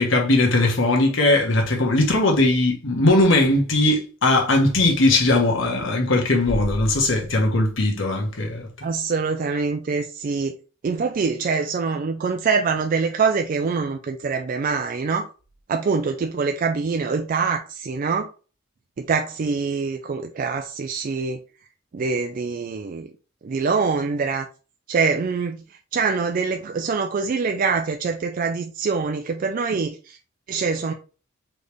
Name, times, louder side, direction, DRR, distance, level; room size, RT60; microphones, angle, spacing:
voice 1, 0.0-8.9, left 2 dB, 70° left, 1.2 m, -19 dB
voice 2, 8.8-10.5 10.8-15.3 15.7-18.3 19.0-21.4 21.9-23.1 23.4-24.5 24.9-25.6 25.9-30.2 30.5-30.9, right 5 dB, 45° right, 0.3 m, -24 dB
3.9 x 3.3 x 3.3 m
head